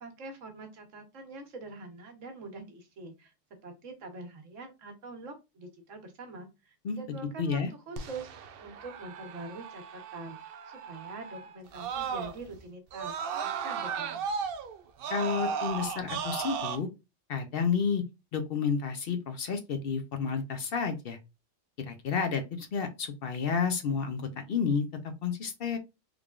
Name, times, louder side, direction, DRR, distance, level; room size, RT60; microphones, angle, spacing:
voice 1, 0.0-3.3 3.6-14.3, right 3 dB, 85° right, 1.3 m, -45 dB
voice 2, 7.4-7.7 15.1-16.9 17.3-18.0 18.3-21.2 21.8-25.8, left 6 dB, 60° left, 0.7 m, -31 dB
Screaming, 8.0-12.6 12.9-16.8, right 6 dB, 60° right, 0.6 m, -36 dB
3.6 x 3.2 x 2.3 m
omnidirectional pair, 1.3 m